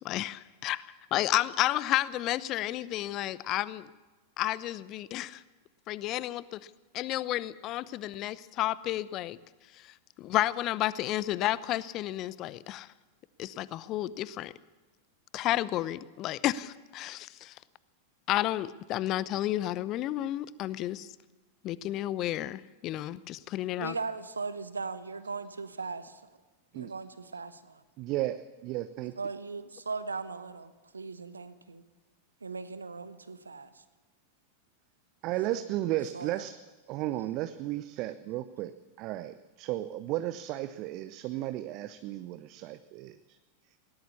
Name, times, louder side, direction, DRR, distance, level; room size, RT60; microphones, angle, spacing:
voice 1, 0.0-0.8 1.1-3.9 4.4-5.4 5.9-6.6 6.9-9.4 10.2-12.9 13.4-14.5 15.3-17.5 18.3-21.1 21.6-24.0, left 14 dB, 35° left, 19 dB, 0.8 m, -31 dB
voice 2, 23.8-26.2 26.7-27.8 29.2-31.8 32.4-33.7 35.5-35.6 36.1-36.4, right 4 dB, 75° right, 12 dB, 1.3 m, -38 dB
voice 3, 28.0-29.1 35.2-36.6 36.9-38.7 39.0-43.4, right 14 dB, 40° right, 12 dB, 0.8 m, -34 dB
20.0 x 18.5 x 7.1 m, 1.2 s
figure-of-eight pair, 90°, 0 cm